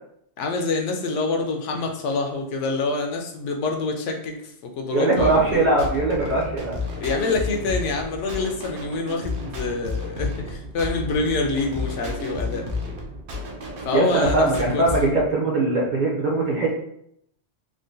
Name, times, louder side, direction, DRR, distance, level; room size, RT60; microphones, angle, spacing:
voice 1, 0.4-4.4 4.8-5.7 6.4-6.5 7.0-12.7 13.8-14.5 14.7-14.9, left 3 dB, 80° left, 2 dB, 0.9 m, -26 dB
voice 2, 4.9-6.8 13.9-16.8, right 2 dB, 50° right, -3 dB, 0.6 m, -21 dB
sound 1, 5.2-15.2, left 3 dB, 70° right, 0.9 m, -32 dB
3.7 x 2.1 x 2.5 m, 0.71 s
omnidirectional pair, 1.2 m